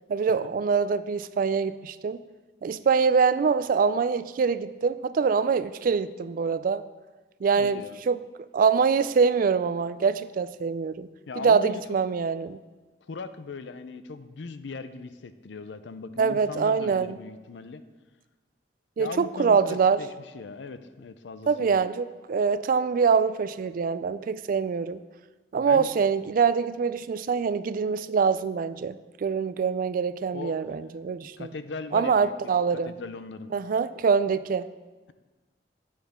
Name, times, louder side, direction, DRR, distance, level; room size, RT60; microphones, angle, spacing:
voice 1, 0.1-2.2 2.6-6.8 7.4-8.2 8.5-11.1 11.4-12.6 16.2-17.1 19.0-20.0 21.5-25.0 25.5-31.5 31.9-32.9 33.5-34.7, right 5 dB, 50° right, 15 dB, 0.3 m, -24 dB
voice 2, 7.5-8.0 11.3-11.8 13.1-17.8 19.0-21.8 25.6-26.1 30.3-31.0 31.4-33.5, left 4 dB, 85° left, 12 dB, 0.5 m, -39 dB
9.2 x 9.0 x 3.6 m, 1.2 s
head